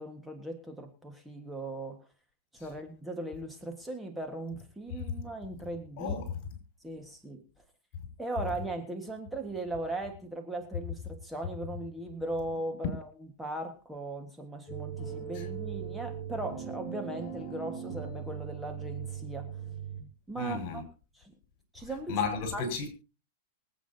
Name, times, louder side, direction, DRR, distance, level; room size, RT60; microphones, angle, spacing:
voice 1, 0.0-2.0 2.5-6.2 6.8-7.4 8.2-13.1 13.4-19.6 20.3-20.8 21.1-21.3 21.7-22.2 22.5-22.6, right 2 dB, 5° right, 1.5 m, -38 dB
voice 2, 6.0-6.4 15.3-15.4 20.4-20.8 22.1-22.9, left 5 dB, 50° left, 5.2 m, -33 dB
sound 1, 14.7-20.0, right 7 dB, 20° left, 6.5 m, -39 dB
24.0 x 8.5 x 2.8 m
hypercardioid pair, 135°, 0 cm